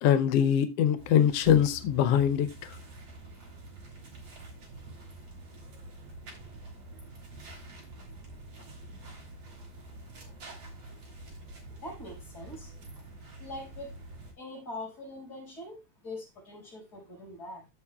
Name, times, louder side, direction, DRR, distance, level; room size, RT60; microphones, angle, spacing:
voice 1, 0.0-2.5, left 9 dB, 80° left, 1.4 m, -23 dB
sound 1, 1.0-14.3, right 2 dB, 50° right, 4.3 m, -46 dB
voice 2, 11.8-12.8 13.4-14.0 14.4-17.7, left 1 dB, 30° left, 5.9 m, -43 dB
14.5 x 6.8 x 2.3 m
omnidirectional pair, 3.5 m